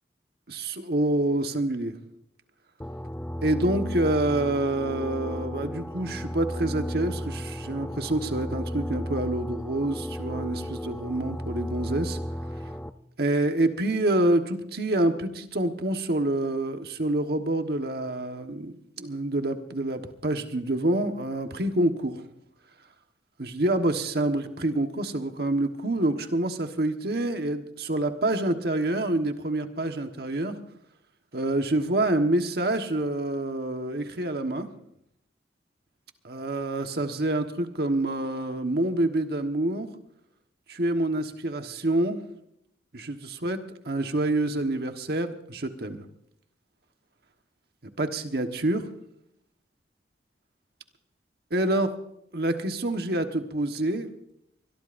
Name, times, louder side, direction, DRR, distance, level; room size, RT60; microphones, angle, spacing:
voice 1, 0.5-1.9 3.4-12.2 13.2-22.2 23.4-30.6 31.3-34.7 36.2-39.9 40.7-42.2 42.9-43.6 43.8-46.0 48.0-48.9 51.5-51.9 52.3-54.1, right 1 dB, 60° right, 6 dB, 1.4 m, -27 dB
sound 1, 2.8-12.9, equal, 10° left, 0.6 m, -34 dB
23.5 x 21.5 x 2.6 m, 0.78 s
head